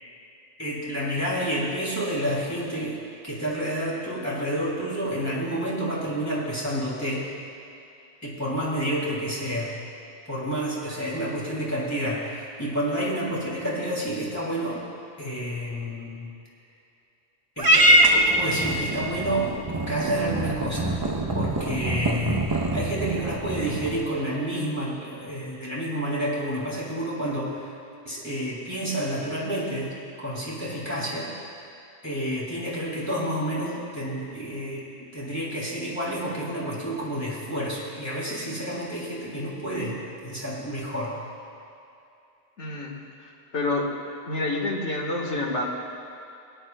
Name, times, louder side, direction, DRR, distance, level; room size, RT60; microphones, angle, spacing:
voice 1, 0.6-7.3 8.2-9.8 10.3-14.8 15.2-16.3 17.6-19.5 19.9-21.0 21.3-27.7 28.0-31.3 32.0-41.2, equal, 15° left, -7 dB, 2.6 m, -29 dB
Purr / Meow, 17.6-24.1, right 1 dB, 25° right, 0.5 m, -23 dB
voice 2, 42.6-42.9 43.5-43.9 44.3-45.7, left 2 dB, 80° left, -2 dB, 1.8 m, -27 dB
22.5 x 9.9 x 2.3 m, 2.7 s
omnidirectional pair, 1.2 m